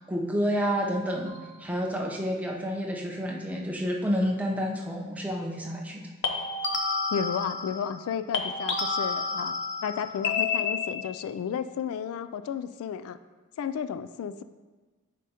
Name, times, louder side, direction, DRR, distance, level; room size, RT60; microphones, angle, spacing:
voice 1, 0.0-6.1, equal, 5° right, -1 dB, 0.6 m, -29 dB
sound 1, 1.3-1.6 6.2-8.1 8.3-11.2, left 4 dB, 55° left, 0.6 m, -30 dB
voice 2, 7.1-9.6 9.8-13.2 13.6-14.4, left 7 dB, 90° left, 14 dB, 0.3 m, -33 dB
8.2 x 5.3 x 2.8 m, 1.3 s
head